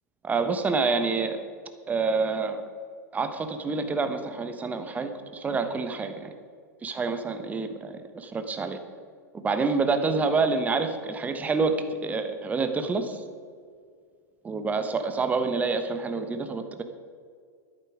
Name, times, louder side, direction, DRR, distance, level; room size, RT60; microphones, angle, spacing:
voice 1, 0.2-1.4 1.9-2.6 3.1-6.3 6.8-8.8 9.3-11.8 12.0-13.2 14.4-16.8, right 4 dB, 15° right, 8 dB, 1.2 m, -27 dB
12.5 x 11.0 x 4.9 m, 2.1 s
figure-of-eight pair, 95°, 10 cm